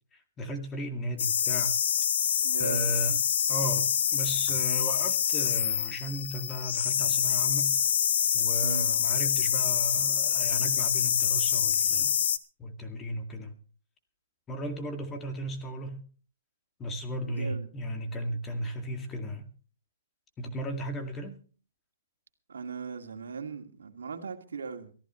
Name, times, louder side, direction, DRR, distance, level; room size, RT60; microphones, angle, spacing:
voice 1, 0.4-1.7 2.6-3.2 3.5-7.7 8.3-12.1 12.6-13.5 14.5-16.0 16.8-19.5 20.4-21.4, equal, 15° left, 2.1 m, -35 dB
sound 1, 1.2-12.4, left 9 dB, 60° left, 1.1 m, -26 dB
voice 2, 2.4-2.9 8.6-8.9 17.3-17.7 22.5-24.9, right 5 dB, 85° right, 2.2 m, -38 dB
23.0 x 14.5 x 3.1 m
hypercardioid pair, 150°, 0 cm